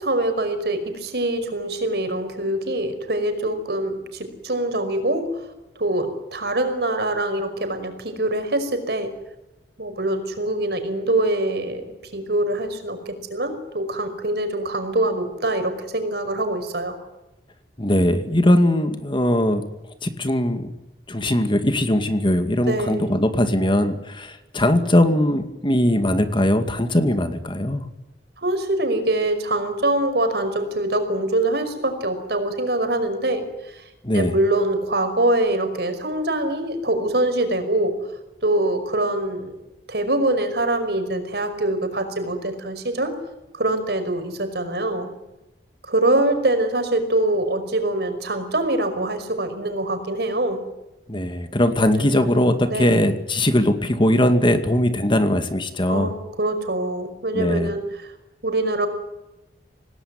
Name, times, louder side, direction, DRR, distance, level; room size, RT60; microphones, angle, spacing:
voice 1, 0.0-5.3 5.8-9.1 9.8-17.0 22.7-23.1 28.4-33.8 34.1-37.9 38.4-39.5 39.9-43.1 43.5-45.1 45.9-50.6 51.8-52.3 52.7-53.0 55.9-58.0 58.4-58.9, right 1 dB, 65° right, 7 dB, 5.4 m, -24 dB
voice 2, 17.8-19.6 20.0-20.7 21.1-27.8 34.0-34.3 51.1-56.1 57.3-57.7, left 1 dB, 30° left, 8 dB, 2.2 m, -20 dB
27.0 x 19.0 x 9.6 m, 0.95 s
head